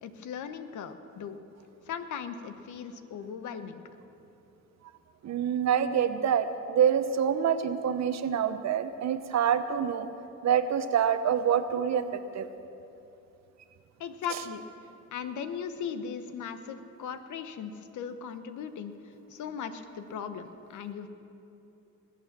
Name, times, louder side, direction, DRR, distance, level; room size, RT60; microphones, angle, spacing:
voice 1, 0.0-1.4 1.9-3.8 14.0-14.6 15.1-18.9 19.3-21.1, left 7 dB, 75° left, 10 dB, 1.0 m, -38 dB
voice 2, 5.2-10.1 10.4-12.5, right 8 dB, 60° right, 10 dB, 0.9 m, -26 dB
19.5 x 8.6 x 7.3 m, 2.8 s
cardioid pair, 90°, 30 cm